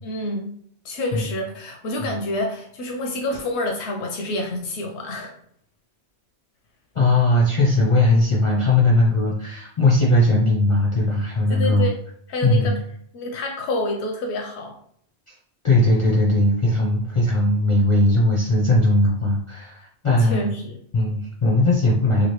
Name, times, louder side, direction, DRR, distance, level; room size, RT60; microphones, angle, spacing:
voice 1, 0.0-0.5 0.8-5.4 11.5-12.0 12.3-12.8 13.1-14.8 20.2-20.8, left 1 dB, 90° left, 2 dB, 0.8 m, -28 dB
voice 2, 7.0-11.9 12.4-12.8 15.6-20.5 20.9-22.3, left 1 dB, 45° left, -4 dB, 0.4 m, -19 dB
3.0 x 2.5 x 2.9 m, 0.65 s
omnidirectional pair, 1.1 m